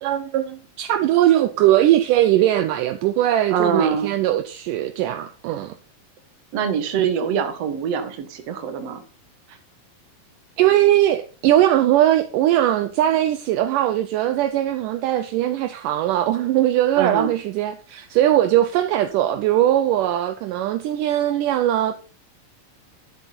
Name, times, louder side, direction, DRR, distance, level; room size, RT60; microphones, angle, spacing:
voice 1, 0.0-5.7 9.5-9.6 10.6-22.0, right 13 dB, 80° right, 2.1 m, -20 dB
voice 2, 3.5-4.1 6.5-9.0 17.0-17.3, right 7 dB, 55° right, 2.2 m, -23 dB
12.0 x 7.9 x 4.2 m
omnidirectional pair, 4.1 m